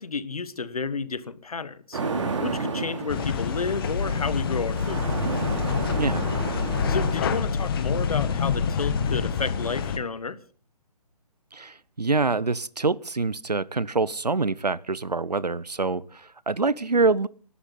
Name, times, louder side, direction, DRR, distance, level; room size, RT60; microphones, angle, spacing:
voice 1, 0.0-2.0 2.4-5.1 6.9-10.4, left 4 dB, 65° left, 1.4 m, -31 dB
sound 1, 1.9-7.3, right 4 dB, 50° right, 3.1 m, -32 dB
sound 2, 3.1-10.0, left 6 dB, 35° left, 1.6 m, -26 dB
voice 2, 11.5-17.3, right 3 dB, 85° right, 0.8 m, -25 dB
28.0 x 11.5 x 4.0 m
figure-of-eight pair, 140°, 20 cm